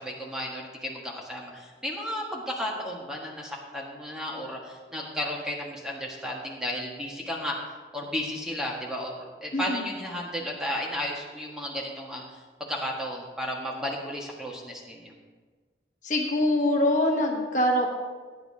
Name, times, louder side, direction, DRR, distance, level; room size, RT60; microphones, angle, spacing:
voice 1, 0.0-7.6 7.9-12.2 12.7-15.1, equal, 5° right, -3 dB, 1.6 m, -33 dB
voice 2, 9.5-9.8 16.0-17.9, left 1 dB, 45° left, 0 dB, 1.3 m, -24 dB
18.0 x 9.5 x 2.9 m, 1.4 s
head